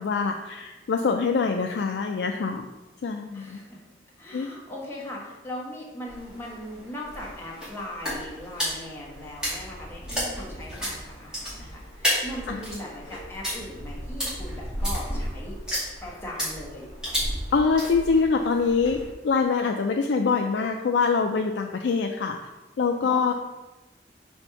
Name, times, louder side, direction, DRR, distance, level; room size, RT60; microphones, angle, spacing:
voice 1, 0.0-2.6 3.0-3.6 4.3-4.5 12.5-12.6 17.5-19.0 19.2-22.4 22.8-23.3, left 5 dB, 70° left, 3 dB, 0.4 m, -24 dB
voice 2, 3.3-3.8 4.2-15.6 16.0-16.9 23.0-23.3, left 1 dB, 15° left, -4 dB, 1.3 m, -39 dB
sound 1, 6.1-19.1, equal, 5° right, 2.1 m, -33 dB
4.4 x 4.3 x 5.7 m, 1.1 s
head